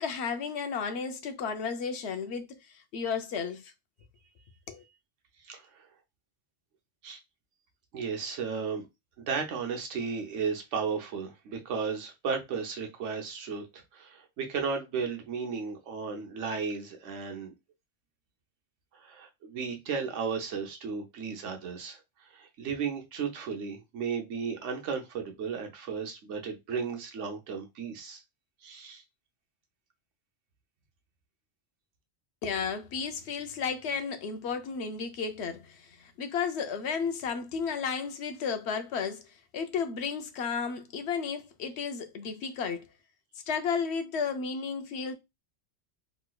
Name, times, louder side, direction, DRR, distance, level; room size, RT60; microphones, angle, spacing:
voice 1, 0.0-3.7 4.7-4.8 32.4-39.3 39.5-42.8 43.5-45.1, left 6 dB, 70° left, 0.8 m, -33 dB
voice 2, 5.4-5.9 7.0-7.2 7.9-8.8 9.2-17.5 18.9-28.2 28.6-29.0, right 5 dB, 90° right, 1.1 m, -34 dB
3.1 x 3.1 x 2.2 m
omnidirectional pair, 1.2 m